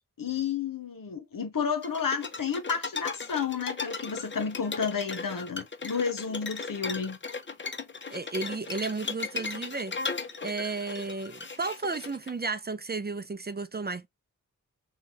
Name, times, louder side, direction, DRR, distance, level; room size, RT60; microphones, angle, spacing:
voice 1, 0.2-7.2, left 6 dB, 70° left, 1.1 m, -31 dB
sound 1, 1.8-12.3, left 4 dB, 35° left, 0.7 m, -37 dB
voice 2, 8.1-9.9 10.4-14.1, right 3 dB, 30° right, 0.5 m, -33 dB
3.9 x 2.4 x 3.8 m
cardioid pair, 45°, 34 cm